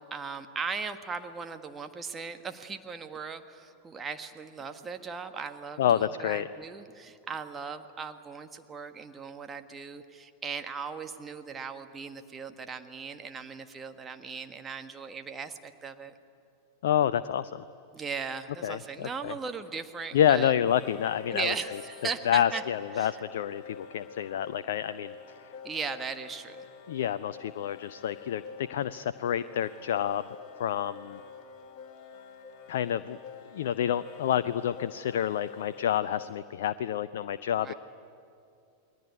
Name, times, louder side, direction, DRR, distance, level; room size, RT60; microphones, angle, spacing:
voice 1, 0.0-16.1 17.9-20.5 21.3-22.6 23.0-23.1 25.6-26.6 37.6-37.7, right 5 dB, 20° right, 7 dB, 1.5 m, -38 dB
voice 2, 5.8-6.5 16.8-17.6 18.6-19.3 20.1-21.8 22.2-25.1 26.9-30.2 30.6-31.2 32.7-33.2 33.5-37.7, left 10 dB, 60° left, 14 dB, 0.6 m, -28 dB
sound 1, 18.0-18.1 20.6-36.4, left 6 dB, 35° left, 2.2 m, -47 dB
28.5 x 21.0 x 9.6 m, 2.5 s
figure-of-eight pair, 90°, 0 cm